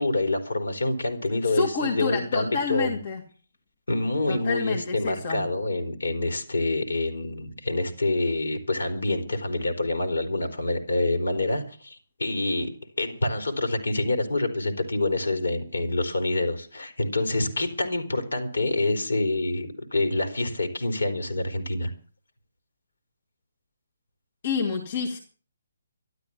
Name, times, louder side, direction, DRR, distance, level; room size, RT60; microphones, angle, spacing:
voice 1, 0.0-3.0 3.9-12.7 13.0-21.9, left 2 dB, 65° left, 7 dB, 3.9 m, -27 dB
voice 2, 1.4-3.2 4.3-5.4 24.4-25.2, left 4 dB, 45° left, 3 dB, 2.4 m, -28 dB
13.0 x 12.5 x 7.2 m, 0.40 s
figure-of-eight pair, 135°, 0 cm